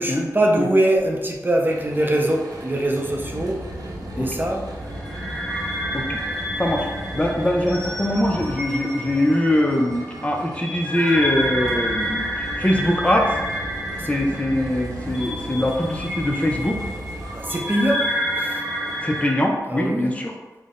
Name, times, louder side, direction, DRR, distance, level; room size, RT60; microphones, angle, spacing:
voice 1, 0.0-3.6 4.1-4.7 13.9-14.5 17.3-18.6 19.7-20.1, right 1 dB, 30° right, 1 dB, 0.6 m, -23 dB
sound 1, 1.7-19.3, right 1 dB, 65° right, 0.8 m, -35 dB
sound 2, 4.9-19.4, equal, 15° right, 0.9 m, -30 dB
voice 2, 7.1-13.4 14.1-16.8 19.0-20.3, left 1 dB, 20° left, 1 dB, 0.5 m, -22 dB
3.7 x 2.1 x 3.6 m, 1.2 s
cardioid pair, 50°, 7 cm